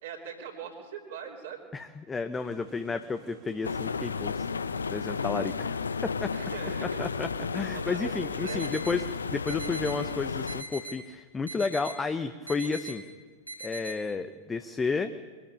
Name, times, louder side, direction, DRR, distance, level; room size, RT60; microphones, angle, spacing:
voice 1, 0.0-1.6 6.3-7.0 7.7-8.7, right 8 dB, 60° right, -2 dB, 3.3 m, -41 dB
voice 2, 1.7-4.5 4.9-6.3 6.8-9.0 9.3-13.0 13.6-15.1, left 4 dB, 15° left, 9 dB, 0.9 m, -32 dB
sound 1, 2.3-9.7, right 7 dB, 40° right, 2.3 m, -53 dB
sound 2, 3.6-10.6, left 5 dB, 75° left, 0.6 m, -33 dB
sound 3, 8.5-9.0 9.5-10.0 10.5-11.0 11.5-12.0 12.5-12.9 13.5-13.9, right 2 dB, 90° right, 4.0 m, -40 dB
23.5 x 14.0 x 8.9 m, 1.4 s
figure-of-eight pair, 90°, 0 cm